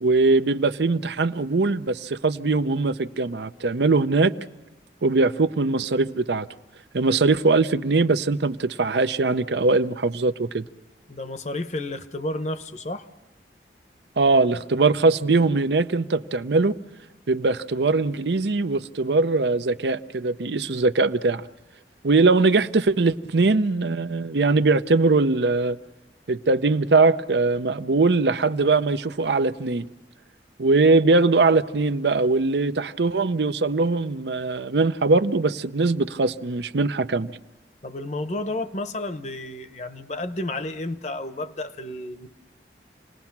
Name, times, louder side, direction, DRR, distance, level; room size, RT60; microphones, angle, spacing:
voice 1, 0.0-4.3 5.0-6.5 6.9-10.6 14.2-16.8 17.3-21.4 22.0-25.8 26.3-29.9 30.6-37.3, right 3 dB, 75° right, 0.7 m, -21 dB
voice 2, 11.1-13.1 37.8-42.3, left 2 dB, 40° left, 0.9 m, -31 dB
28.0 x 19.5 x 5.9 m
head